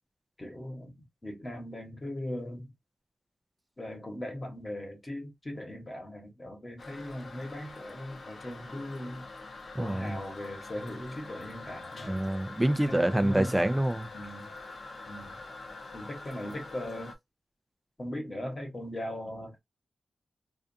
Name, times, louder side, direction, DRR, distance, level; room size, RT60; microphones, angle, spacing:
voice 1, 0.4-2.7 3.8-9.3 9.8-12.3 12.9-13.7 14.1-14.5 15.1-15.4 15.9-17.1 18.0-19.6, left 1 dB, 25° left, 1.1 m, -39 dB
Toilet flush, 6.8-17.1, left 3 dB, 45° left, 0.6 m, -45 dB
voice 2, 9.7-10.2 12.1-14.1, right 1 dB, 10° right, 0.4 m, -27 dB
2.4 x 2.4 x 2.5 m
wide cardioid pair, 135°, 0 cm